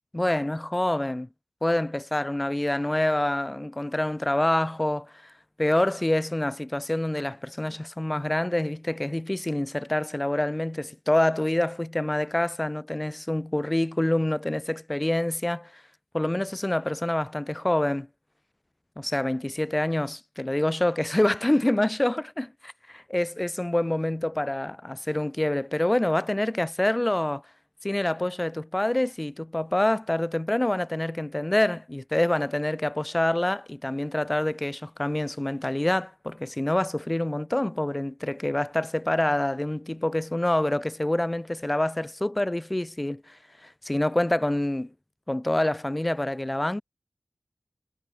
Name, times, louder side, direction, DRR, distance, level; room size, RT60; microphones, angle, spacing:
voice 1, 0.1-1.3 1.6-5.3 5.6-15.8 16.1-18.1 19.0-27.4 27.8-43.4 43.6-44.9 45.3-46.8, left 1 dB, 25° left, 4.2 m, -26 dB
cardioid pair, 45°, 0 cm